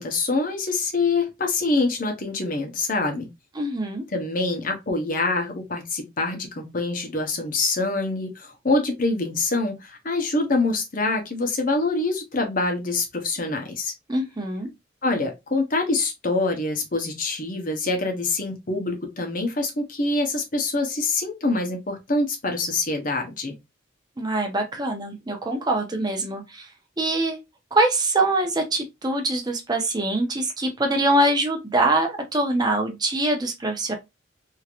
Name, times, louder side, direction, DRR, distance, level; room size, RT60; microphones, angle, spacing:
voice 1, 0.0-3.3 4.1-13.9 15.0-23.5, left 3 dB, 45° left, 0.9 m, -25 dB
voice 2, 3.6-4.0 14.1-14.7 24.2-26.7 27.0-27.4 27.7-33.9, right 2 dB, 20° right, 0.7 m, -24 dB
3.0 x 2.8 x 2.4 m
head